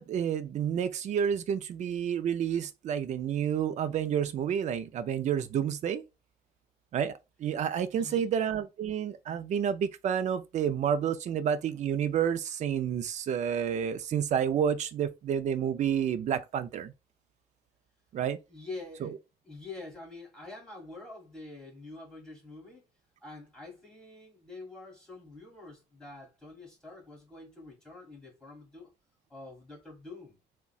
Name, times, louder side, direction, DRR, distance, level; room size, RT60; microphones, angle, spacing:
voice 1, 0.0-6.0 6.9-7.1 7.4-16.9 18.1-18.4 19.0-19.1, right 8 dB, 45° right, 0.4 m, -29 dB
voice 2, 8.0-8.3 18.5-19.1 19.4-22.8 23.2-28.9 29.3-30.4, left 2 dB, 5° left, 1.7 m, -46 dB
3.7 x 2.2 x 2.3 m
cardioid pair, 110°, 17 cm